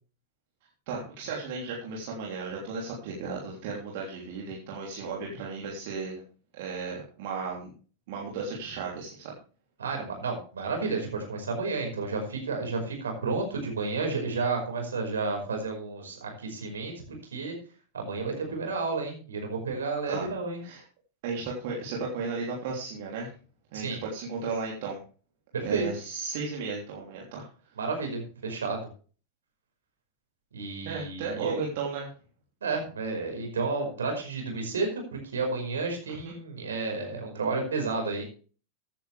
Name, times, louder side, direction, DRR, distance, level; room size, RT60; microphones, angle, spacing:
voice 1, 0.9-6.2 6.6-7.7 8.1-9.3 20.1-20.3 20.6-20.8 21.2-23.3 23.7-25.0 25.6-27.5 30.8-32.1 36.1-36.3, right 4 dB, 50° right, -2 dB, 3.3 m, -35 dB
voice 2, 9.8-16.9 17.3-17.5 17.9-20.6 23.7-24.0 25.5-25.9 27.8-28.8 30.5-31.6 32.6-35.0 35.3-38.2, right 4 dB, 70° right, 3 dB, 5.3 m, -31 dB
15.0 x 10.0 x 3.5 m, 0.39 s
figure-of-eight pair, 90°, 0 cm